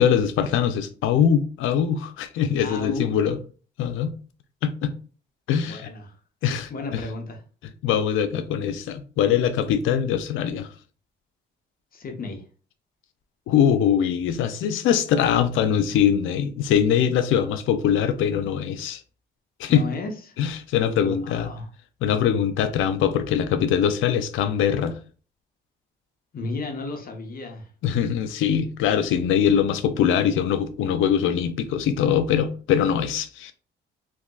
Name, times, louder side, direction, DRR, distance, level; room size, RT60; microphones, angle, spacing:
voice 1, 0.0-3.4 3.8-4.1 4.6-4.9 5.5-5.9 6.4-7.0 7.8-10.7 13.5-19.0 19.6-19.8 20.4-21.5 22.0-25.0 27.8-33.5, left 8 dB, 85° left, 0.5 m, -22 dB
voice 2, 2.6-3.1 5.6-6.1 6.7-7.4 11.9-12.5 19.7-20.4 21.0-21.7 26.3-27.7, left 3 dB, 45° left, 0.9 m, -33 dB
3.6 x 2.6 x 2.3 m
cardioid pair, 90°, 20 cm